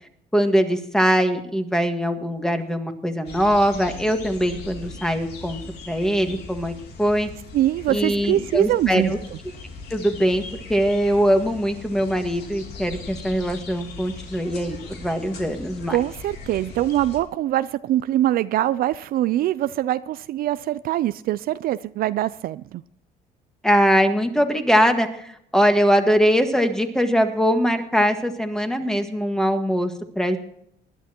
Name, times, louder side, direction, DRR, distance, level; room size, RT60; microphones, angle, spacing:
voice 1, 0.3-6.7 7.0-7.3 7.9-9.2 9.9-10.4 10.7-16.0 23.6-30.4, equal, 5° left, 6 dB, 1.6 m, -21 dB
sound 1, 3.3-17.2, left 3 dB, 75° left, 2.9 m, -39 dB
voice 2, 7.5-9.1 15.9-22.8, right 13 dB, 60° right, 15 dB, 0.4 m, -23 dB
20.5 x 11.5 x 2.9 m, 0.72 s
cardioid pair, 110°, 17 cm